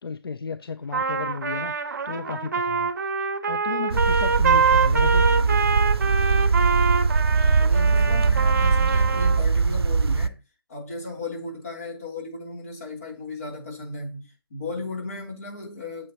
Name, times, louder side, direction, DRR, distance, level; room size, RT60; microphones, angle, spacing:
voice 1, 0.0-2.9 3.5-5.3, left 5 dB, 70° left, 0.6 m, -34 dB
Trumpet, 0.9-9.4, right 5 dB, 45° right, 0.9 m, -25 dB
sound 1, 3.9-10.3, right 4 dB, 75° right, 0.5 m, -21 dB
voice 2, 7.5-10.4 10.7-16.1, left 3 dB, 35° left, 3.1 m, -36 dB
8.0 x 7.5 x 2.9 m
hypercardioid pair, 175°, 13 cm